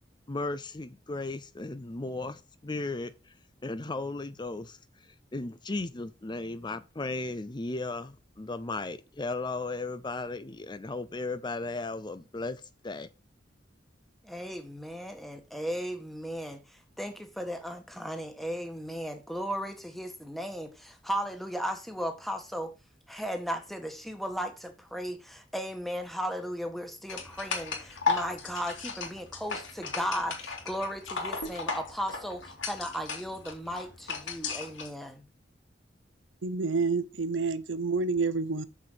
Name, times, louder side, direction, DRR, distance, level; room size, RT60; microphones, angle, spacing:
voice 1, 0.3-3.3 3.6-13.1, left 2 dB, 25° left, 0.5 m, -36 dB
voice 2, 14.2-22.7 23.1-35.2, equal, ahead, 1.5 m, -36 dB
sound 1, 27.1-34.9, left 4 dB, 80° left, 2.5 m, -35 dB
voice 3, 36.4-38.7, right 4 dB, 80° right, 0.8 m, -28 dB
7.1 x 6.4 x 5.8 m
head